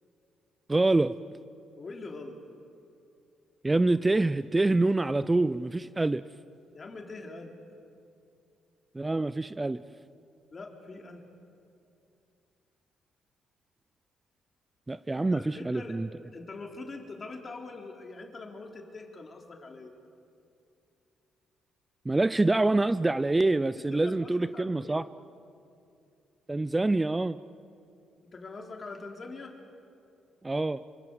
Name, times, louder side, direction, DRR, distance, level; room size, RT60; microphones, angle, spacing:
voice 1, 0.7-1.1 3.6-6.2 8.9-9.8 14.9-16.1 22.1-25.0 26.5-27.4 30.4-30.8, right 2 dB, 15° right, 15 dB, 0.5 m, -26 dB
voice 2, 1.8-2.4 6.7-7.5 10.5-11.2 15.3-16.0 16.3-19.9 23.8-25.0 28.2-29.5, left 3 dB, 35° left, 2 dB, 4.0 m, -43 dB
26.5 x 25.0 x 8.0 m, 2.6 s
cardioid pair, 90°, 0 cm